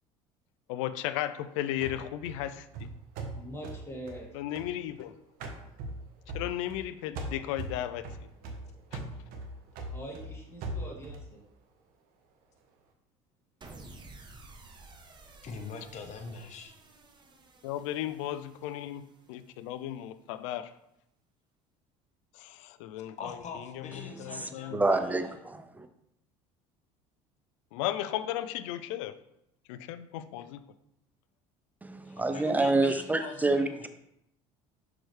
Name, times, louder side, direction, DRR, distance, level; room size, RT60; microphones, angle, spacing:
voice 1, 0.7-2.6 4.3-5.1 6.3-8.0 8.9-9.0 17.6-19.0 19.3-20.7 22.4-23.2 24.2-24.8 27.7-29.1 29.7-30.6, left 12 dB, 80° left, 13 dB, 0.4 m, -35 dB
sound 1, 1.8-5.1 5.4-6.9 7.2-11.3, right 1 dB, 65° right, 1.1 m, -40 dB
voice 2, 3.3-4.3 9.9-11.4, right 1 dB, 15° left, -3 dB, 2.3 m, -43 dB
sound 2, 13.6-19.9, right 2 dB, 30° right, 1.0 m, -53 dB
voice 3, 15.4-16.7 23.2-24.7 25.1-25.2 32.0-33.9, left 4 dB, 45° left, 4 dB, 1.1 m, -43 dB
voice 4, 24.1-25.9 31.8-33.9, right 2 dB, 10° right, 9 dB, 0.6 m, -28 dB
6.1 x 4.8 x 3.2 m, 0.79 s
supercardioid pair, 80°, 16 cm